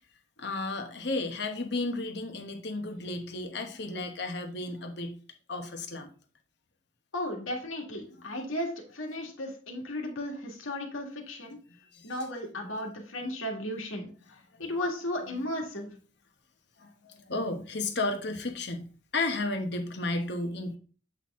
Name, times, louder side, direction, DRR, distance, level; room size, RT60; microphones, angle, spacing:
voice 1, 0.4-5.2 5.5-6.1 11.9-12.1 14.5-14.6 16.8-20.8, left 2 dB, 55° left, 5 dB, 1.0 m, -33 dB
voice 2, 7.1-11.6 12.0-14.1 14.6-15.9, left 1 dB, 90° left, 1 dB, 1.9 m, -35 dB
7.9 x 4.3 x 3.6 m, 0.40 s
head